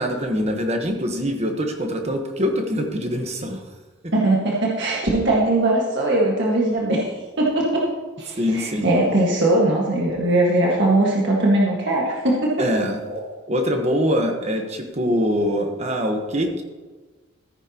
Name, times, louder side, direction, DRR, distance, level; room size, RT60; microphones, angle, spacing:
voice 1, 0.0-3.6 4.0-4.1 8.4-8.9 12.6-13.0 13.5-16.6, equal, 30° right, 4 dB, 1.2 m, -23 dB
voice 2, 4.1-7.1 7.4-7.9 8.2-12.6 13.0-13.2, right 1 dB, 55° right, -3 dB, 1.7 m, -20 dB
14.5 x 9.1 x 3.0 m, 1.3 s
head